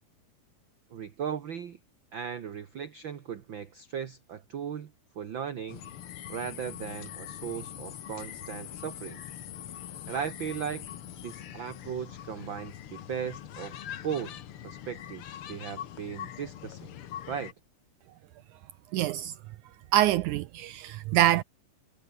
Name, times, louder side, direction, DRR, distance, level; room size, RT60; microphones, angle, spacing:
voice 1, 0.9-1.8 2.1-4.9 5.1-5.8 6.3-9.2 10.1-10.9 11.2-16.9 17.3-17.5, right 8 dB, 55° right, 1.4 m, -37 dB
sound 1, 5.7-17.5, left 10 dB, 60° left, 1.5 m, -43 dB
voice 2, 18.9-19.3 19.9-21.4, right 13 dB, 80° right, 1.8 m, -25 dB
omnidirectional pair, 4.0 m